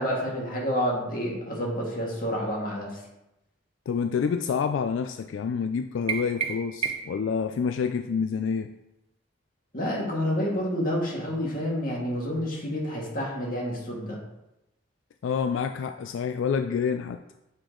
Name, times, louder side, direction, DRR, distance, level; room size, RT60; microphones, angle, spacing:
voice 1, 0.0-3.0 9.7-14.2, equal, 45° left, -3 dB, 1.8 m, -29 dB
voice 2, 3.9-8.7 15.2-17.2, left 6 dB, 80° left, 8 dB, 0.3 m, -28 dB
sound 1, 6.1-7.3, right 7 dB, 30° right, 0.5 m, -31 dB
7.5 x 4.9 x 3.8 m, 0.91 s
head